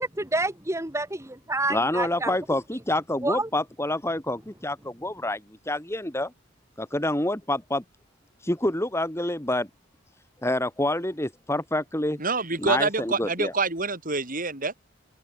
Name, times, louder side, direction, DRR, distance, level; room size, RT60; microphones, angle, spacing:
voice 1, 0.3-2.3 3.2-3.5, right 2 dB, 15° right, 2.3 m, -28 dB
voice 2, 1.7-5.4 5.7-6.3 6.8-7.8 8.4-9.7 10.4-12.2 12.6-13.5, left 1 dB, 15° left, 3.2 m, -27 dB
voice 3, 12.2-14.7, right 3 dB, 40° right, 7.4 m, -26 dB
head